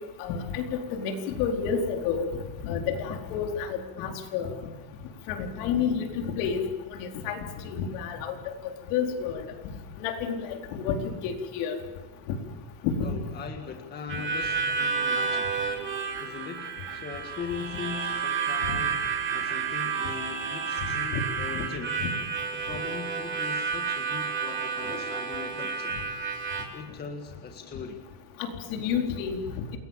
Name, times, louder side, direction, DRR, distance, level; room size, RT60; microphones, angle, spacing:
voice 1, 0.2-2.3 2.6-4.5 5.3-6.6 6.9-7.4 7.6-8.3 8.6-9.4 10.0-11.8 12.8-13.2 18.7-18.8 21.1-21.2 21.5-21.6 28.4-29.4, left 6 dB, 60° left, 3 dB, 4.4 m, -30 dB
voice 2, 13.0-15.7 16.2-19.0 19.3-22.0 22.5-26.0 26.7-28.0, left 6 dB, 20° left, 4 dB, 1.9 m, -40 dB
Harmonica, 14.1-26.6, right 6 dB, 25° right, 3.6 m, -30 dB
29.0 x 21.5 x 7.4 m, 1.2 s
cardioid pair, 180°, 48 cm